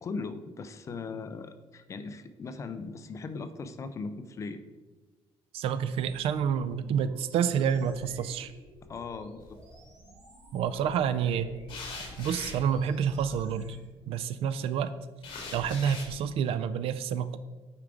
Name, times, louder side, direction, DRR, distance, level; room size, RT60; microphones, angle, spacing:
voice 1, 0.0-4.6 8.9-9.6, left 4 dB, 30° left, 10 dB, 0.4 m, -39 dB
voice 2, 5.5-8.5 10.5-11.5 12.2-13.8 14.1-14.9 15.5-17.4, right 8 dB, 70° right, 13 dB, 0.4 m, -28 dB
sound 1, 5.8-13.8, right 1 dB, 30° right, 1.5 m, -52 dB
sound 2, 9.4-9.9 11.7-13.7 15.2-16.2, left 3 dB, 55° left, 1.9 m, -42 dB
8.4 x 4.7 x 3.7 m, 1.3 s
cardioid pair, 165°, 10 cm